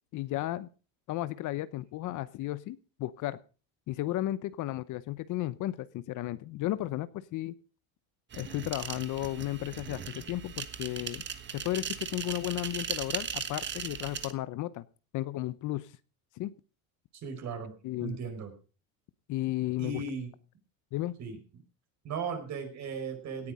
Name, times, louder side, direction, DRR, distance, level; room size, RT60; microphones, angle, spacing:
voice 1, 0.1-0.7 1.1-3.4 3.9-7.5 8.3-11.2 11.5-14.9 15.1-15.9 16.4-16.5 17.8-18.2 19.3-20.0 20.9-21.1, left 15 dB, 50° left, 16 dB, 0.9 m, -34 dB
sound 1, 8.3-14.3, right 7 dB, 30° right, 1.4 m, -38 dB
voice 2, 17.1-17.7 18.0-18.5 19.8-20.3 21.2-21.4 22.0-23.5, right 5 dB, 45° right, 6 dB, 5.1 m, -36 dB
17.5 x 10.0 x 5.0 m, 0.36 s
cardioid pair, 135°, 39 cm